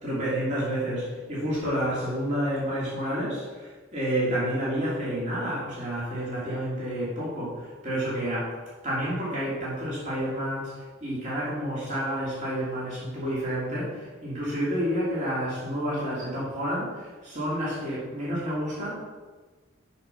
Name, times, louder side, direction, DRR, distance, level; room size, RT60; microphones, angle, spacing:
voice 1, 0.0-8.5 8.8-10.7 11.0-18.9, equal, 35° right, -8 dB, 2.6 m, -29 dB
6.9 x 5.3 x 5.8 m, 1.3 s
head